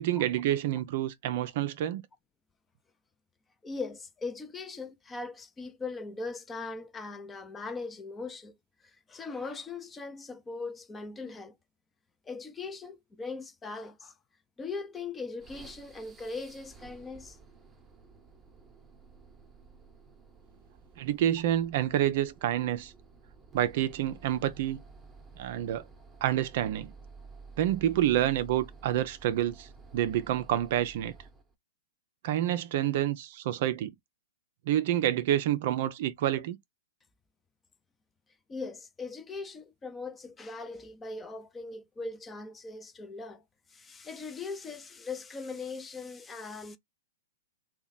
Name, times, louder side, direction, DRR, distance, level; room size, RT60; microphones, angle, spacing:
voice 1, 0.0-2.0 21.0-22.9 23.5-24.8 25.4-25.8 26.2-26.9 27.6-31.1 32.2-33.9 34.7-36.6, right 12 dB, 55° right, 0.5 m, -28 dB
voice 2, 3.6-8.6 8.8-11.6 12.2-14.1 14.6-17.4 38.5-43.4 43.7-46.8, left 4 dB, 15° left, 0.6 m, -40 dB
sound 1, 15.4-31.5, right 4 dB, 15° right, 0.9 m, -52 dB
3.0 x 2.2 x 4.0 m
hypercardioid pair, 120°, 0 cm